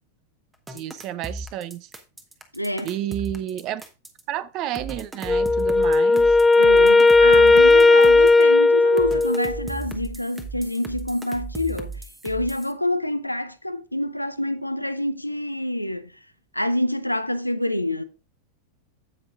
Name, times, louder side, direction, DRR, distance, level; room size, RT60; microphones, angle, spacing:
sound 1, 0.7-4.2 4.7-8.4 9.0-12.7, right 3 dB, 10° right, 1.1 m, -36 dB
voice 1, 0.7-1.9 2.8-3.8 4.3-6.4, right 12 dB, 40° right, 0.7 m, -31 dB
voice 2, 2.5-2.9 6.5-16.2 16.5-18.0, left 1 dB, 90° left, 0.6 m, -27 dB
Wind instrument woodwind instrument, 5.3-9.6, left 3 dB, 10° left, 0.3 m, -15 dB
16.0 x 5.4 x 2.5 m
figure-of-eight pair, 90°, 0 cm